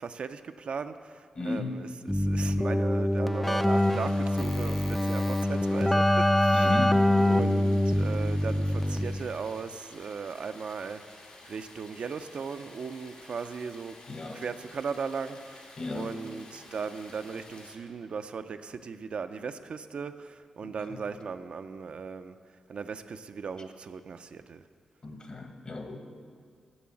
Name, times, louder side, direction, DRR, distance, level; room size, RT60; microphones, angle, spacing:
voice 1, 0.0-6.9 7.2-14.0 14.3-22.4 22.7-24.6, right 5 dB, 65° right, 9 dB, 0.4 m, -38 dB
voice 2, 1.3-1.8 6.5-7.0 14.1-14.4 15.8-16.1 20.6-20.7 25.0-26.0, left 2 dB, 45° left, 4 dB, 1.2 m, -34 dB
Keyboard (musical), 2.1-9.4, left 1 dB, 5° left, 0.3 m, -25 dB
Stream, 3.4-17.7, left 2 dB, 80° left, 1.9 m, -52 dB
7.1 x 6.8 x 7.5 m, 2.1 s
cardioid pair, 70°, 2 cm